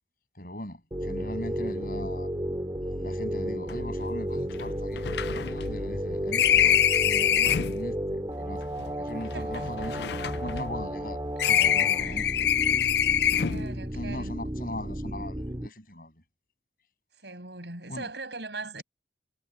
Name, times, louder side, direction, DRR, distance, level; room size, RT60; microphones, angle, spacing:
voice 1, 0.4-2.3 3.0-11.2 11.5-12.3 13.9-16.1 17.9-18.1, left 1 dB, 50° left, 7.6 m, -39 dB
sound 1, 0.9-15.7, equal, 20° right, 1.9 m, -33 dB
sound 2, 3.7-3.8 4.0-4.1 4.5-7.8 8.6-11.1 11.4-13.7, left 10 dB, 75° left, 0.4 m, -25 dB
voice 2, 9.1-9.7 12.0-12.3 13.5-14.4 17.2-18.8, right 3 dB, 80° right, 7.4 m, -40 dB
head